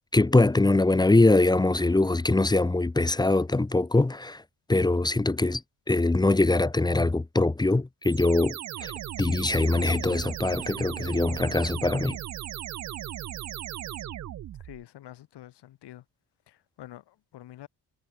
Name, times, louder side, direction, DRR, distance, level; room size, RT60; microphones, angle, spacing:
voice 1, 0.1-4.4 4.7-5.6 5.9-8.9 9.2-12.2, left 2 dB, 10° left, 0.8 m, -23 dB
sound 1, 8.0-14.8, right 12 dB, 45° right, 0.5 m, -37 dB
voice 2, 14.6-16.0 16.5-17.7, left 13 dB, 80° left, 3.2 m, -47 dB
cardioid pair, 80°, 40 cm